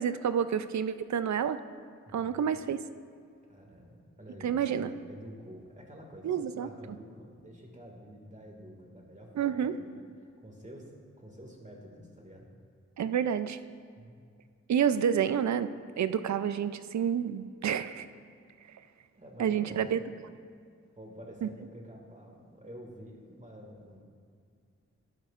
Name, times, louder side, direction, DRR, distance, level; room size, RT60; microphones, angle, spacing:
voice 1, 0.0-1.6 2.1-2.8 4.4-4.9 6.2-6.7 9.4-9.7 13.0-13.6 14.7-15.7 16.0-18.1 19.4-20.0 21.4-21.5, right 8 dB, 70° right, 12 dB, 0.4 m, -29 dB
voice 2, 2.1-2.7 3.4-12.5 14.0-14.2 19.1-20.2 21.0-24.0, equal, 25° right, 0 dB, 1.9 m, -49 dB
11.5 x 10.5 x 2.5 m, 2.3 s
cardioid pair, 55°, 30 cm